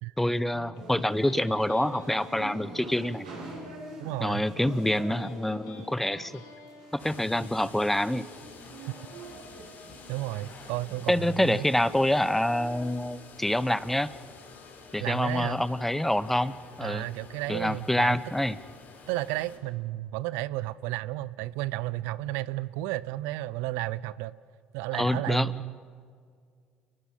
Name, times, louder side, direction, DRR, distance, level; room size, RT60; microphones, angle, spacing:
voice 1, 0.2-3.3 4.2-6.4 6.9-8.3 11.1-14.1 14.9-17.0 17.5-18.6 24.9-25.5, left 1 dB, 5° left, 17 dB, 0.9 m, -26 dB
Electric guitar, 0.5-7.5, left 5 dB, 75° left, 2.7 m, -48 dB
sound 1, 0.7-12.9, right 2 dB, 85° right, 7.7 m, -47 dB
voice 2, 4.0-4.4 10.1-11.7 15.0-15.6 16.8-18.2 19.1-24.3 24.7-25.8, right 17 dB, 70° right, 19 dB, 0.5 m, -33 dB
sound 2, 7.0-19.6, left 4 dB, 50° left, 4.5 m, -49 dB
29.5 x 20.5 x 5.7 m, 2.1 s
hypercardioid pair, 55°, 4 cm